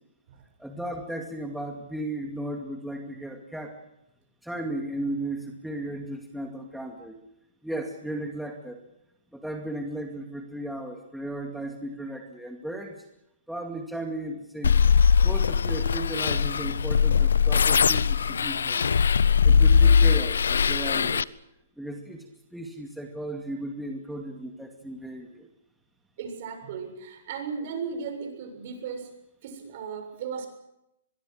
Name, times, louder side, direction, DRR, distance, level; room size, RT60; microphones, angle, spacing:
voice 1, 0.6-3.8 4.4-7.2 7.6-8.8 9.3-13.0 13.5-14.8 15.2-18.9 19.4-21.2 21.8-25.5, right 1 dB, ahead, 3 dB, 2.3 m, -35 dB
sound 1, 14.6-21.2, left 6 dB, 85° left, 0.7 m, -20 dB
voice 2, 26.2-29.1 29.4-30.5, right 6 dB, 50° right, 6 dB, 7.0 m, -36 dB
24.0 x 22.0 x 6.6 m, 0.82 s
hypercardioid pair, 140°, 0 cm